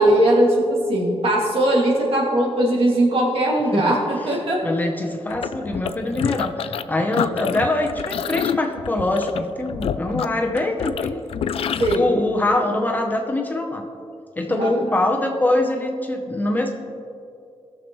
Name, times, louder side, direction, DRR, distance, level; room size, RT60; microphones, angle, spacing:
voice 1, 0.0-4.6 11.8-12.0 14.6-14.7, right 1 dB, 65° right, -3 dB, 2.2 m, -19 dB
voice 2, 4.6-11.2 11.9-13.9 14.4-16.7, left 2 dB, 15° left, 2 dB, 0.7 m, -23 dB
sound 1, 5.3-6.8 7.1-12.0, left 8 dB, 70° left, 0.4 m, -27 dB
18.5 x 6.7 x 3.1 m, 2.5 s
wide cardioid pair, 175°, 10 cm